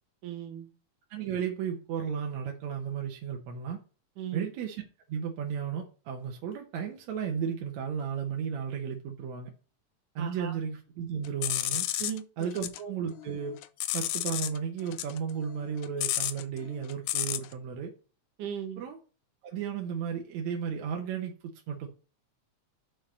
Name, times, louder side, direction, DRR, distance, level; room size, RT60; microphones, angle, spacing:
voice 1, 0.2-0.7 4.2-4.4 10.2-10.6 12.0-12.7 18.4-18.8, right 9 dB, 90° right, 2.9 m, -38 dB
voice 2, 1.1-3.8 4.3-4.8 5.1-9.5 10.2-11.9 12.4-13.6 13.9-17.9 18.8-19.0 19.4-21.9, right 7 dB, 70° right, 2.2 m, -34 dB
sound 1, 11.2-12.8 13.2-14.6 14.9-17.5, left 14 dB, 80° left, 1.9 m, -32 dB
5.7 x 5.6 x 6.3 m
omnidirectional pair, 3.5 m